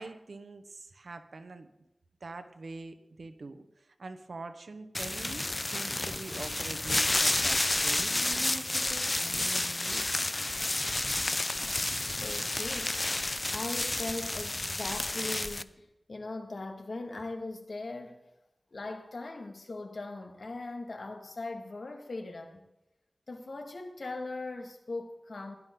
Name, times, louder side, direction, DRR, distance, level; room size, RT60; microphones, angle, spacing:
voice 1, 0.0-1.7 2.2-10.3, right 3 dB, 85° right, 8 dB, 1.1 m, -44 dB
sound 1, 4.9-15.6, left 2 dB, 35° left, 0.5 m, -30 dB
voice 2, 12.1-13.0 13.5-15.7 16.1-18.2 18.7-22.6 23.3-25.6, left 2 dB, 75° left, 4 dB, 2.0 m, -39 dB
17.0 x 11.0 x 3.9 m, 0.91 s
wide cardioid pair, 75°, 0 cm